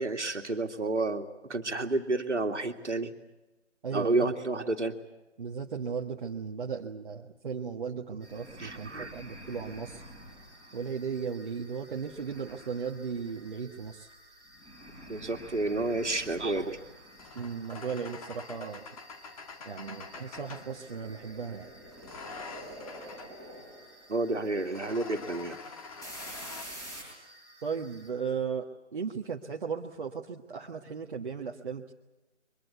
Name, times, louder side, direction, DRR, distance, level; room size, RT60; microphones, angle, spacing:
voice 1, 0.0-3.1 3.9-5.0 8.6-9.1 15.1-16.8 24.1-25.6, right 2 dB, 75° right, 4 dB, 2.3 m, -30 dB
voice 2, 3.8-4.3 5.4-10.0 10.7-14.1 17.3-18.8 19.6-21.7 27.6-31.9, right 6 dB, 45° right, 0 dB, 1.5 m, -36 dB
sound 1, 8.2-28.1, equal, 10° left, 7.8 m, -49 dB
sound 2, 11.9-14.0 15.2-20.8 21.9-23.4 24.5-26.6, left 4 dB, 30° left, 2.3 m, -47 dB
23.5 x 21.5 x 8.2 m, 1.1 s
figure-of-eight pair, 150°, 36 cm